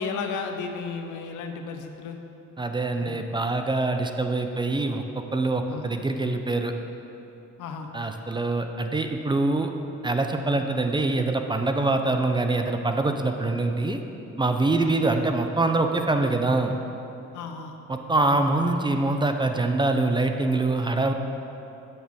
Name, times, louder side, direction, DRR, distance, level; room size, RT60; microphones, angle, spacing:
voice 1, 0.0-2.2 3.0-3.2 5.7-5.8 7.6-7.9 14.8-14.9 17.3-17.8 18.2-18.4, left 5 dB, 85° left, 5 dB, 0.7 m, -34 dB
voice 2, 2.6-5.0 5.3-6.7 7.9-9.7 10.0-14.0 14.4-16.8 17.9-21.1, right 2 dB, 15° right, 5 dB, 0.4 m, -24 dB
7.6 x 6.6 x 3.6 m, 2.9 s
cardioid pair, 90°, 30 cm